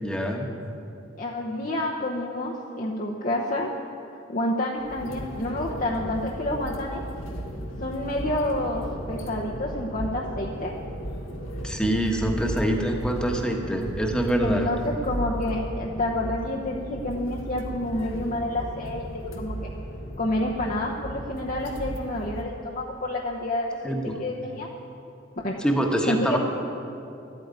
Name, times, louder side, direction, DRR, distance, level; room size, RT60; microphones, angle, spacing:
voice 1, 0.0-0.5 11.6-14.7 23.8-24.2 25.6-26.4, right 1 dB, 5° left, 2 dB, 1.3 m, -25 dB
voice 2, 1.2-3.7 4.3-7.0 7.8-10.7 14.4-19.7 20.2-24.7 25.4-25.6 26.0-26.4, left 1 dB, 45° left, -3 dB, 1.0 m, -29 dB
sound 1, 4.8-22.4, equal, 90° left, 1.6 m, -35 dB
12.5 x 9.1 x 9.6 m, 2.7 s
head